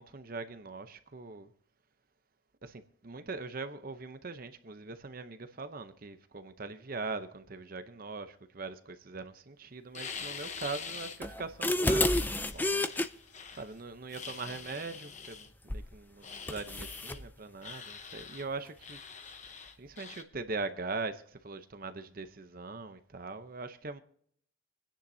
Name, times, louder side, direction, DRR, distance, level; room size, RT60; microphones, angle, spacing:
voice 1, 0.0-1.5 2.6-12.1 12.4-12.7 13.6-19.0 19.5-24.0, right 3 dB, 45° right, 0.7 m, -41 dB
sound 1, 9.9-11.2 11.6-13.7 14.1-15.5 16.2-17.2 17.6-18.5 18.8-20.2, left 6 dB, 35° left, 0.9 m, -45 dB
sound 2, 11.2-13.1 15.7-15.9 16.5-17.2, left 1 dB, 10° left, 0.4 m, -29 dB
26.0 x 10.0 x 2.7 m
head